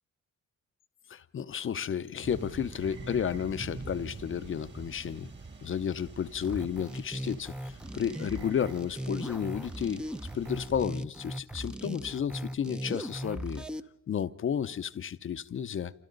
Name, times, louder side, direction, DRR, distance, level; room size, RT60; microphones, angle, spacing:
voice 1, 1.1-5.3 5.6-10.0 10.3-13.6 14.1-15.9, left 8 dB, 45° left, 0.7 m, -32 dB
sound 1, 2.2-10.9, right 3 dB, 35° right, 2.4 m, -46 dB
sound 2, 6.4-13.8, right 1 dB, 5° right, 0.7 m, -38 dB
28.0 x 27.5 x 4.0 m
cardioid pair, 90°, 30 cm